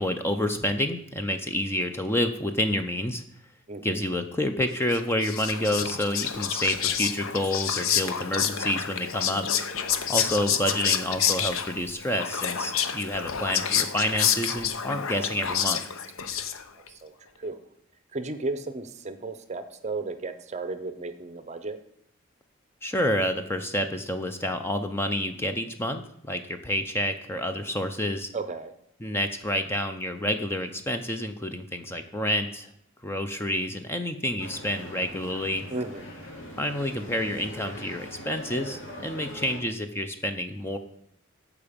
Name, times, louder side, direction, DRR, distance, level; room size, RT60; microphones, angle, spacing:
voice 1, 0.0-3.2 3.8-9.5 10.1-15.8 22.8-26.0 26.3-28.3 29.0-32.7 33.0-35.7 36.6-40.8, left 1 dB, 10° left, 7 dB, 0.5 m, -28 dB
voice 2, 3.7-4.0 9.9-10.1 16.9-17.1 17.4-17.6 18.1-21.8 28.3-28.7 35.7-36.0, right 3 dB, 35° right, 10 dB, 0.7 m, -34 dB
Whispering, 4.9-16.9, left 8 dB, 80° left, 0.7 m, -28 dB
sound 1, 34.4-39.6, left 1 dB, 65° left, 3.0 m, -41 dB
14.0 x 4.9 x 5.1 m, 0.72 s
head